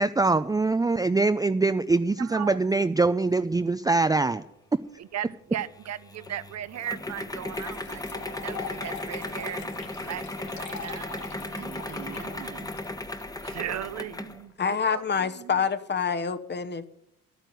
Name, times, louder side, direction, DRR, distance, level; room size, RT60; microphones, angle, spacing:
voice 1, 0.0-4.4, right 3 dB, 10° right, 0.5 m, -23 dB
voice 2, 2.2-2.6 5.0-12.7 13.4-14.5 14.9-15.5, right 11 dB, 60° right, 0.7 m, -38 dB
sound 1, 5.6-14.4, left 1 dB, 10° left, 1.2 m, -36 dB
sound 2, 6.8-6.9 7.4-13.7, left 6 dB, 70° left, 2.7 m, -42 dB
voice 3, 14.6-16.9, left 6 dB, 35° left, 1.1 m, -27 dB
11.0 x 9.2 x 9.3 m
cardioid pair, 90°, 30 cm